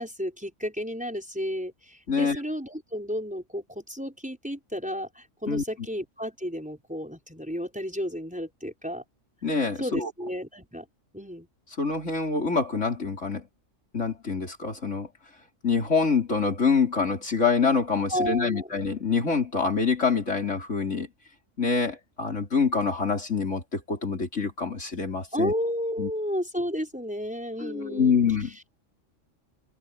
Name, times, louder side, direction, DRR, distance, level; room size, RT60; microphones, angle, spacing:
voice 1, 0.0-9.0 9.8-10.9 11.1-11.5 18.1-18.7 25.3-28.2, equal, 5° right, 5.4 m, -32 dB
voice 2, 2.1-2.4 5.5-5.6 9.4-10.1 11.8-13.4 13.9-15.1 15.6-21.1 21.6-25.5 26.0-26.1 27.6-28.5, left 5 dB, 70° left, 4.4 m, -25 dB
omnidirectional pair, 1.3 m